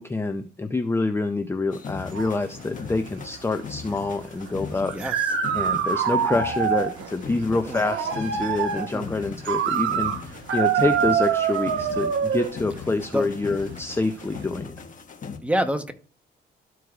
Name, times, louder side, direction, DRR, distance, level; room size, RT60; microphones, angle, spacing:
voice 1, 0.0-4.9 5.5-14.7, left 3 dB, 10° left, 7 dB, 0.5 m, -27 dB
sound 1, 1.7-15.4, left 5 dB, 40° left, 1.3 m, -39 dB
sound 2, 2.0-14.4, right 8 dB, 80° right, 1.0 m, -26 dB
voice 2, 4.8-5.3 7.5-7.8 8.7-9.1 13.1-13.3 15.4-15.9, equal, 5° right, 8 dB, 0.9 m, -28 dB
13.0 x 4.6 x 2.4 m, 0.39 s
cardioid pair, 90°, 20 cm